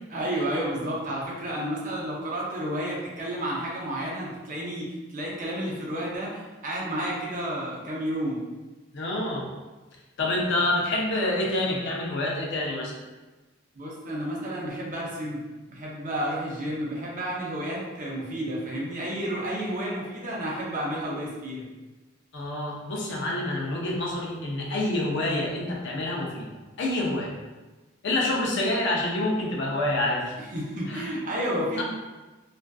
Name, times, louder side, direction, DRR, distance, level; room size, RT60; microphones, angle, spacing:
voice 1, 0.1-8.4 13.7-15.4 15.7-21.6 30.4-31.8, right 1 dB, 40° right, -4 dB, 0.6 m, -31 dB
voice 2, 8.9-9.5 10.2-13.0 22.3-27.4 28.0-30.3 30.9-31.0 31.8-31.9, left 1 dB, 65° left, -2 dB, 0.5 m, -27 dB
2.4 x 2.3 x 2.3 m, 1.2 s
head